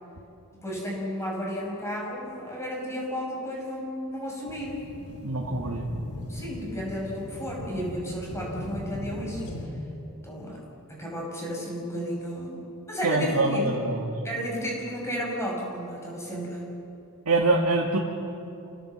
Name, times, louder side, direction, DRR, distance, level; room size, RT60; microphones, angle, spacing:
voice 1, 0.5-4.8 6.3-9.4 10.2-10.6 10.9-13.9 14.2-16.8, equal, 10° left, -2 dB, 5.5 m, -33 dB
sound 1, 4.5-9.7, left 1 dB, 85° left, 3.6 m, -38 dB
voice 2, 5.2-5.9 13.0-14.2 17.3-18.0, right 2 dB, 85° right, -1 dB, 2.0 m, -24 dB
27.5 x 17.0 x 7.7 m, 2.8 s
head